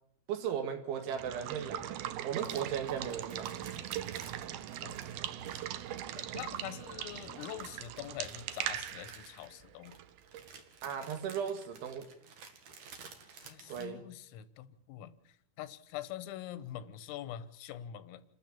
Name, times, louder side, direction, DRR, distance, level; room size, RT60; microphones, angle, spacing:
voice 1, 0.3-2.0 2.2-3.5 10.8-12.1 13.7-14.0, right 8 dB, 70° right, 4.4 m, -36 dB
Water / Water tap faucet / Liquid, 1.0-10.6, right 12 dB, 85° right, 2.1 m, -40 dB
sound 1, 2.3-13.9, right 5 dB, 50° right, 2.9 m, -54 dB
voice 2, 6.1-10.0 13.4-18.2, left 12 dB, 90° left, 3.8 m, -44 dB
28.5 x 13.0 x 8.6 m
omnidirectional pair, 5.8 m